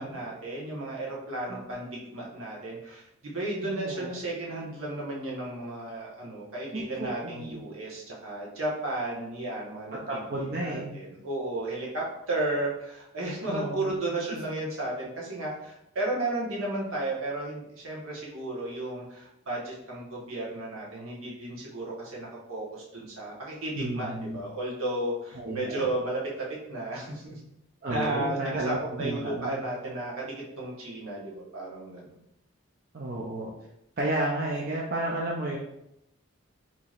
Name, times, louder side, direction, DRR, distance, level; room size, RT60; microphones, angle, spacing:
voice 1, 0.0-26.2 26.7-27.4 27.9-32.1, right 2 dB, 75° right, -4 dB, 1.2 m, -34 dB
voice 2, 3.6-4.1 6.7-7.6 10.1-10.9 13.5-13.9 23.7-24.4 25.4-25.9 27.8-29.6 32.9-33.5 34.0-35.6, right 1 dB, 45° right, -3 dB, 0.5 m, -32 dB
4.5 x 2.9 x 2.4 m, 0.82 s
head